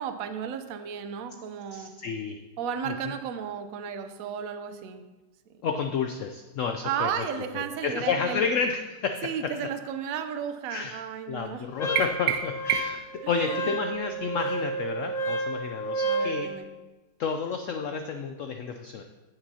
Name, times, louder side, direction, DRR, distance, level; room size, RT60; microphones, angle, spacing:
voice 1, 0.0-1.9 2.6-5.0 6.8-8.4 9.2-11.7 13.2-13.8 16.0-16.7, right 8 dB, 65° right, 9 dB, 0.9 m, -34 dB
voice 2, 1.7-2.4 2.9-3.1 5.6-7.2 7.5-9.5 10.7-11.0 11.3-16.5 17.2-19.0, left 5 dB, 85° left, 5 dB, 0.6 m, -31 dB
Wind instrument woodwind instrument, 11.8-16.4, right 2 dB, 45° left, 0.5 m, -31 dB
sound 1, 12.0-13.2, right 10 dB, 80° right, 1.2 m, -28 dB
14.5 x 5.9 x 2.8 m, 1.2 s
omnidirectional pair, 1.9 m